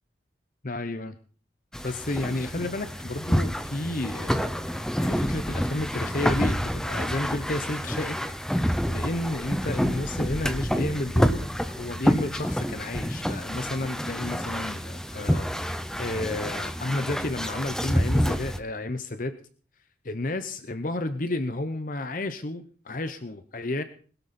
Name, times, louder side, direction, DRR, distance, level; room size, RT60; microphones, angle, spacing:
voice 1, 0.6-1.2 1.8-8.2 8.5-15.7 16.0-19.4 20.0-23.8, left 2 dB, 45° left, 11 dB, 0.9 m, -32 dB
sound 1, 1.7-18.6, equal, 5° left, 0.8 m, -28 dB
21.0 x 12.0 x 4.3 m, 0.42 s
head